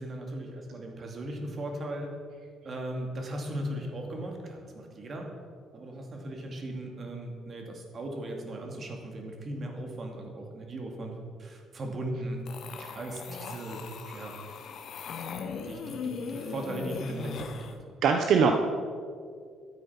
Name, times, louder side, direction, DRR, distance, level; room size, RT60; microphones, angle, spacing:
voice 1, 0.0-2.2 2.6-5.3 5.7-12.4 12.9-14.4 15.6-18.0, right 1 dB, 45° right, 2 dB, 2.6 m, -37 dB
sound 1, 12.5-17.8, left 6 dB, 65° left, 1.1 m, -39 dB
voice 2, 18.0-18.5, right 6 dB, 70° right, 4 dB, 0.9 m, -22 dB
12.5 x 9.4 x 5.8 m, 2.2 s
cardioid pair, 95°, 0 cm